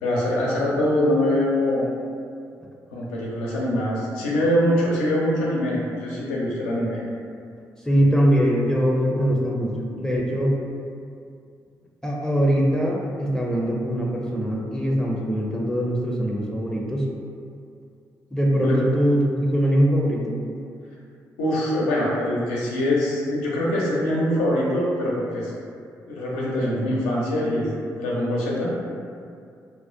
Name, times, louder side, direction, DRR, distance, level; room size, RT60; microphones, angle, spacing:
voice 1, 0.0-1.9 2.9-7.0 18.6-18.8 21.4-25.5 26.1-27.7 28.0-28.7, left 1 dB, 80° left, -4 dB, 0.4 m, -23 dB
voice 2, 7.9-10.6 12.0-17.1 18.3-20.4, equal, 10° left, -3 dB, 0.4 m, -22 dB
2.5 x 2.0 x 2.5 m, 2.3 s
hypercardioid pair, 40°, 9 cm